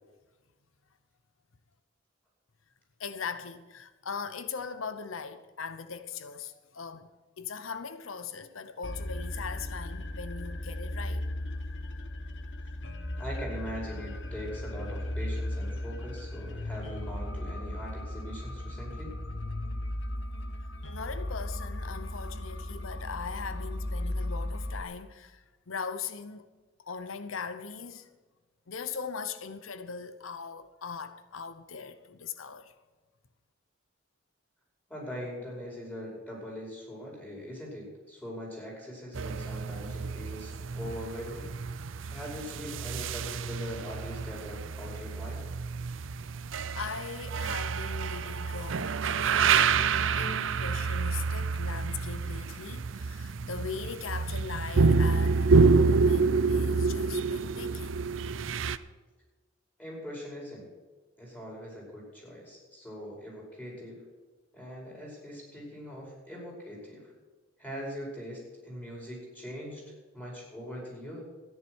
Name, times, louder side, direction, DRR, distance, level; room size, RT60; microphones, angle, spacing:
voice 1, 3.0-7.1 7.4-11.3 20.9-26.5 26.9-28.1 28.7-32.7 46.7-49.3 50.1-58.1, left 5 dB, 90° left, 0.9 m, -40 dB
sound 1, 8.8-24.8, left 1 dB, 65° left, 1.3 m, -36 dB
voice 2, 13.2-19.1 34.9-41.5 42.0-45.4 59.8-60.7 61.2-64.0 64.5-67.1 67.6-69.8 70.1-71.2, equal, 10° left, 5.5 m, -41 dB
sound 2, 39.1-58.8, right 4 dB, 75° right, 0.6 m, -28 dB
14.0 x 10.5 x 6.3 m
head